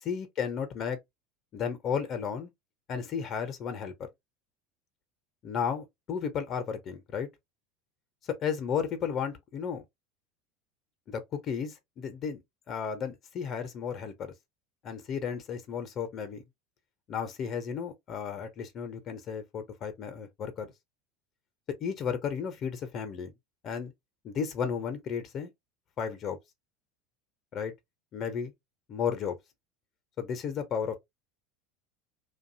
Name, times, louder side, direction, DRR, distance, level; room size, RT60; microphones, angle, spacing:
voice 1, 0.0-1.0 1.5-2.5 2.9-3.9 5.4-7.3 8.2-9.8 11.1-12.4 12.7-14.3 14.8-16.4 17.1-20.7 21.8-23.3 23.6-23.9 24.2-25.5 26.0-26.4 27.5-27.7 28.1-28.5 28.9-29.4 30.2-31.0, left 7 dB, 45° left, 0.6 m, -33 dB
2.6 x 2.2 x 2.5 m
figure-of-eight pair, 75°, 0 cm